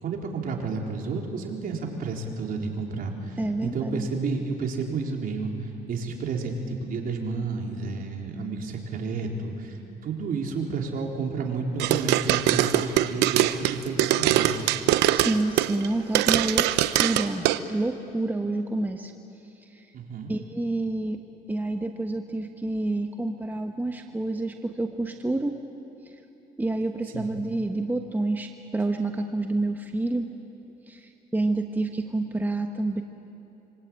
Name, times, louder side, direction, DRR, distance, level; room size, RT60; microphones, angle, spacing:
voice 1, 0.0-14.8 19.9-20.3 27.1-27.3, right 4 dB, 55° right, 1 dB, 4.2 m, -31 dB
voice 2, 3.4-4.1 15.1-16.7 17.0-19.1 19.5-19.9 20.3-21.2 21.5-25.6 26.0-26.2 26.6-30.3 30.9-33.0, right 2 dB, 10° right, 4 dB, 1.3 m, -28 dB
sound 1, 11.8-15.9 16.1-17.6, right 14 dB, 90° right, 0.9 m, -22 dB
26.0 x 25.0 x 9.0 m, 2.9 s
cardioid pair, 110°, 17 cm